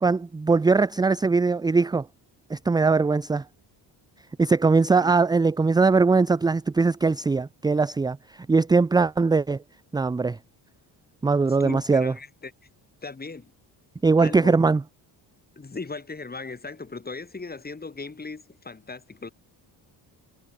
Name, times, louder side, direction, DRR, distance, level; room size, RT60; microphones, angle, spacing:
voice 1, 0.0-2.0 2.5-3.4 4.4-8.2 8.5-9.6 9.9-10.4 11.2-12.1 14.0-14.8, right 4 dB, 10° right, 0.4 m, -21 dB
voice 2, 11.3-12.5 13.0-13.5 14.2-14.6 15.6-19.3, left 4 dB, 20° left, 6.9 m, -38 dB
cardioid pair, 120°, 42 cm